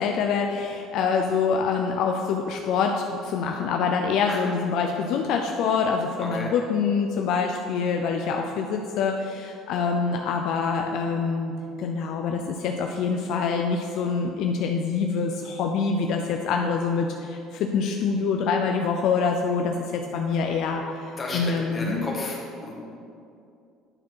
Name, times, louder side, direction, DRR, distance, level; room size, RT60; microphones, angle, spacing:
voice 1, 0.0-22.1, left 5 dB, 60° left, 3 dB, 0.5 m, -25 dB
voice 2, 6.2-6.5 21.2-22.7, left 2 dB, 25° left, -2 dB, 1.4 m, -33 dB
9.7 x 4.5 x 4.6 m, 2.5 s
cardioid pair, 155°, 0 cm